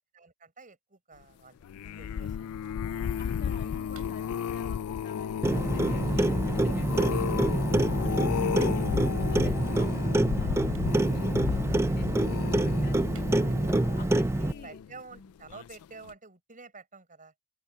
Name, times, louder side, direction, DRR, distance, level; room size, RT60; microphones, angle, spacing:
voice 1, 0.1-2.5 3.0-3.2 14.3-17.3, right 4 dB, 35° right, 7.0 m, -50 dB
sound 1, 1.6-15.0 15.5-15.8 16.1-16.2, left 8 dB, 75° left, 0.3 m, -33 dB
voice 2, 3.2-14.8 15.1-15.4, left 3 dB, 40° left, 1.8 m, -49 dB
sound 2, 3.9-4.4 5.2-5.4 5.9-6.4 6.8-6.9 7.6-7.7 7.9-8.0 8.2-9.0 9.8-9.9 10.7-11.0 11.3-11.4 11.6-11.7 11.9-12.0 12.4-12.6 13.1-13.4 13.8-13.9 14.0-14.1, right 10 dB, 75° right, 5.2 m, -54 dB
Clock, 5.4-14.5, right 1 dB, 10° right, 0.4 m, -26 dB
head